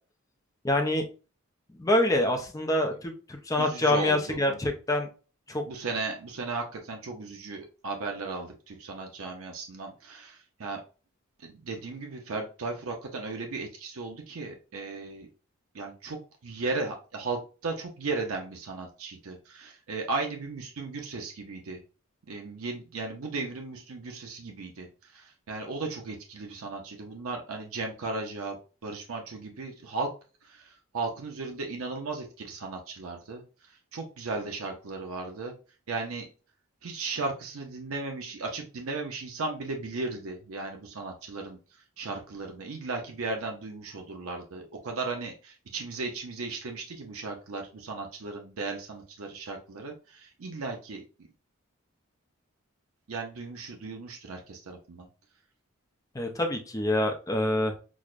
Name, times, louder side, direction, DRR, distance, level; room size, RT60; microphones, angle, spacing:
voice 1, 0.6-1.0 1.8-5.1 5.5-5.6 56.1-57.8, left 1 dB, 15° left, 3 dB, 0.5 m, -26 dB
voice 2, 3.6-4.6 5.7-10.8 11.4-15.3 15.7-16.2 16.4-21.8 22.3-28.6 28.8-30.1 30.4-35.5 35.9-36.3 36.8-41.6 42.0-51.0 53.1-55.1, right 3 dB, 90° right, 2 dB, 0.6 m, -36 dB
6.1 x 2.1 x 2.4 m, 0.35 s
head